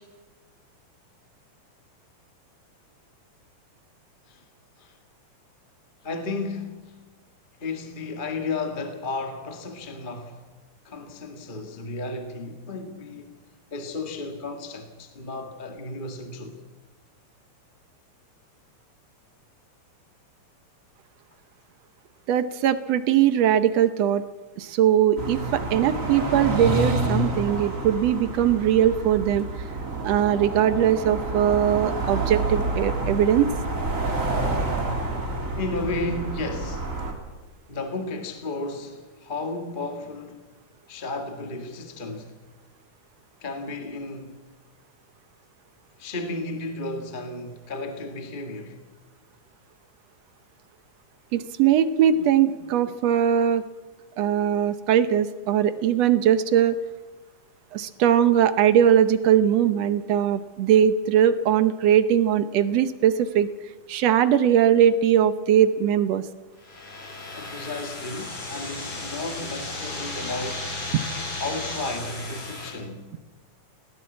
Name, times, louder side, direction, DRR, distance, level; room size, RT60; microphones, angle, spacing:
voice 1, 6.0-6.9 7.6-10.5 10.8-13.3 13.7-16.6 35.5-36.9 37.7-40.4 40.9-42.3 43.4-44.4 46.0-48.8 67.3-70.7 71.4-73.2, left 2 dB, 20° left, 1.5 m, -33 dB
voice 2, 22.3-24.2 24.6-29.5 30.0-33.5 51.3-53.6 54.2-56.8 57.7-63.5 63.9-66.3, right 9 dB, 70° right, 1.9 m, -20 dB
sound 1, 25.2-37.1, right 2 dB, 25° right, 3.2 m, -28 dB
sound 2, 66.6-72.7, left 2 dB, 55° left, 5.8 m, -34 dB
20.0 x 17.5 x 8.5 m
omnidirectional pair, 3.4 m